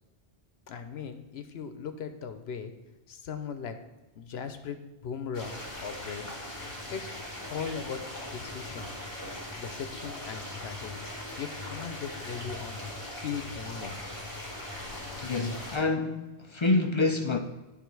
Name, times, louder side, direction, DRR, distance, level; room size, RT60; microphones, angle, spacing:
voice 1, 0.7-2.7 3.1-3.8 4.2-6.4 6.9-7.1 7.5-8.0 8.3-8.9 9.6-11.0 11.3-12.8 13.2-14.0, left 6 dB, 85° left, 1.0 m, -38 dB
sound 1, 5.3-15.8, left 1 dB, 20° left, 1.8 m, -40 dB
voice 2, 15.2-17.4, left 3 dB, 45° left, 0.4 m, -27 dB
10.5 x 3.7 x 4.6 m
omnidirectional pair, 1.0 m